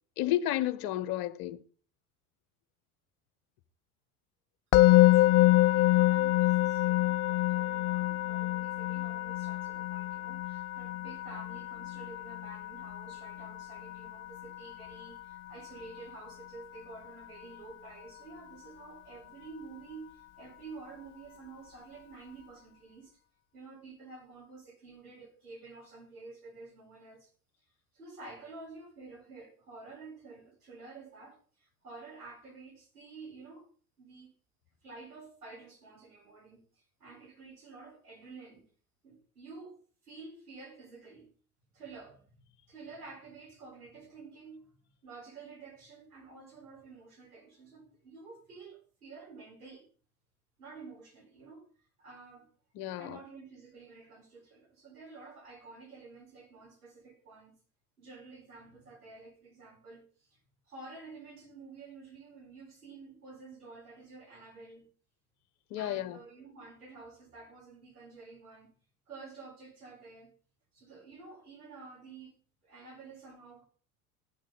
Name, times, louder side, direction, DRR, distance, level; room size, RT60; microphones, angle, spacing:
voice 1, 0.2-1.6 52.7-53.2 65.7-66.2, left 13 dB, 55° left, 1.2 m, -32 dB
Musical instrument, 4.7-15.8, left 18 dB, 35° left, 0.4 m, -27 dB
voice 2, 4.8-23.2 23.5-27.3 27.9-33.7 34.0-34.3 34.8-38.6 39.0-41.3 41.7-44.7 45.0-49.9 50.6-51.7 52.0-52.5 53.0-57.5 58.0-60.4 60.7-64.9 65.8-68.7 69.1-70.3 70.7-72.4 72.6-73.6, right 4 dB, 80° right, 5.0 m, -50 dB
13.5 x 9.3 x 4.1 m
figure-of-eight pair, 70°, 44 cm